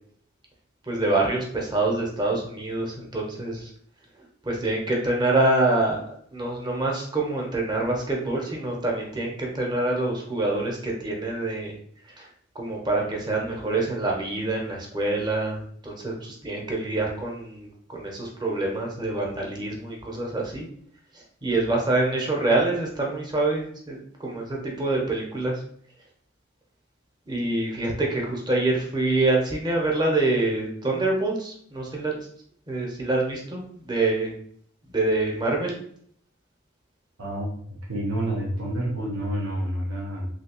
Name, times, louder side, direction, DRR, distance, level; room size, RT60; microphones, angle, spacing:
voice 1, 0.8-3.7 4.4-11.7 12.1-12.3 12.5-20.7 21.1-25.6 27.3-32.1 32.7-34.3 34.9-35.8, right 2 dB, 20° right, -1 dB, 0.7 m, -26 dB
voice 2, 37.2-37.5 37.9-40.3, right 1 dB, 85° right, -2 dB, 0.8 m, -28 dB
3.2 x 2.8 x 2.8 m, 0.62 s
head